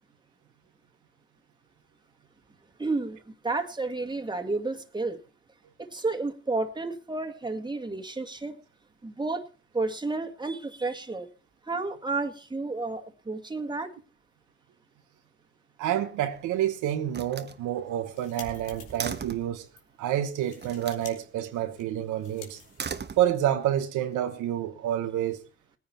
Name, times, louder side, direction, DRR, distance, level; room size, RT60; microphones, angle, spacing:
voice 1, 2.8-5.2 5.8-8.6 9.0-9.4 9.7-11.3 11.7-13.9, right 3 dB, 15° right, 1.9 m, -31 dB
voice 2, 15.8-19.6 20.0-22.6 23.2-25.4, right 11 dB, 90° right, 1.2 m, -28 dB
Slam, 16.0-16.6 17.1-19.6 20.6-21.1 22.6-23.7, right 6 dB, 35° right, 1.2 m, -39 dB
sound 1, 17.9-19.2 19.7-19.8 20.2-21.1 21.4-23.4, left 7 dB, 85° left, 2.7 m, -50 dB
19.0 x 9.8 x 4.3 m
cardioid pair, 80°, 29 cm